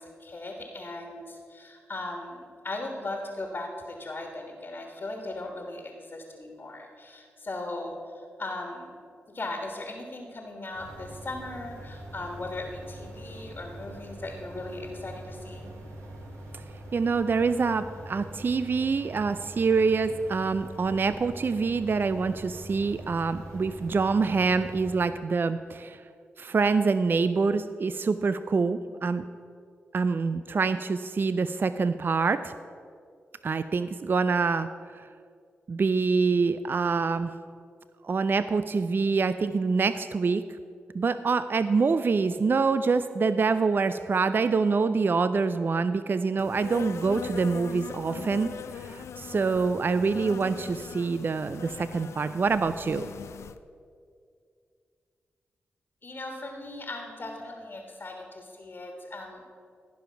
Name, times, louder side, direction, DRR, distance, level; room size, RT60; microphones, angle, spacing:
voice 1, 0.0-8.0 8.4-9.0 9.3-15.7 56.0-59.4, left 2 dB, 50° left, 2 dB, 1.6 m, -38 dB
sound 1, 10.7-25.0, right 1 dB, 85° right, 1.4 m, -43 dB
voice 2, 16.9-26.0 26.4-29.3 29.9-32.5 33.4-35.1 35.7-37.3 38.0-40.4 40.9-53.1, right 4 dB, 45° right, 12 dB, 0.4 m, -26 dB
Insect, 46.4-53.6, left 7 dB, 75° left, 0.4 m, -40 dB
14.5 x 5.3 x 5.7 m, 2.3 s
supercardioid pair, 40°, 5 cm